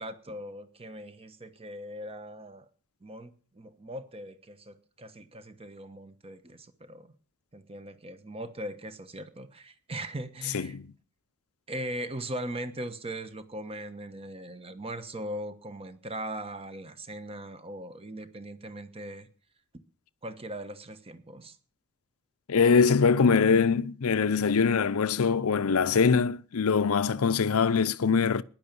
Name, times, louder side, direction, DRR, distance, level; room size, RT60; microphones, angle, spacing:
voice 1, 0.0-2.6 3.0-7.1 7.5-10.8 11.7-19.3 20.2-21.6, right 1 dB, 25° right, 1.2 m, -39 dB
voice 2, 10.5-10.9 22.5-28.4, left 5 dB, 70° left, 0.6 m, -23 dB
15.0 x 10.5 x 6.9 m
head